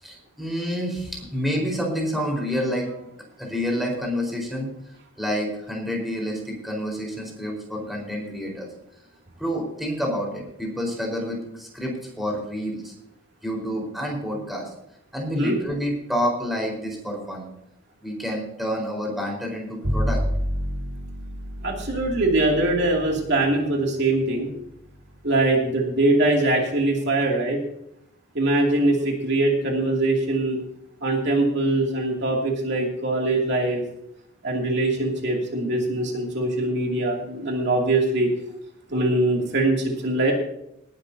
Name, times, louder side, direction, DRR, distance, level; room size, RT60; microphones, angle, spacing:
voice 1, 0.0-2.9 3.4-4.7 5.2-8.7 9.4-12.9 13.4-14.7 15.1-17.5 18.0-20.2, equal, ahead, -1 dB, 4.6 m, -28 dB
Bowed string instrument, 19.8-26.3, equal, 85° right, 2.0 m, -31 dB
voice 2, 21.6-24.5 25.2-27.6 28.3-30.6 31.0-33.8 34.4-38.3 38.9-40.3, right 2 dB, 55° right, 0 dB, 2.7 m, -22 dB
19.0 x 12.0 x 2.8 m, 0.78 s
head